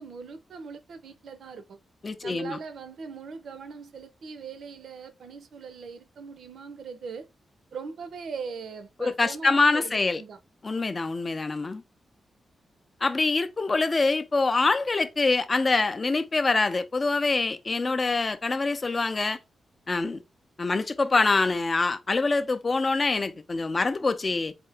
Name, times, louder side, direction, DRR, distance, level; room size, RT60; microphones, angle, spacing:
voice 1, 0.0-1.8 2.2-7.3 7.7-10.4, right 5 dB, 65° right, 0.7 m, -40 dB
voice 2, 2.0-2.6 9.0-10.2 10.6-11.8 13.0-19.4 19.9-20.2 20.6-24.5, left 3 dB, 25° left, 0.5 m, -25 dB
4.3 x 2.7 x 3.4 m
wide cardioid pair, 160°, 0 cm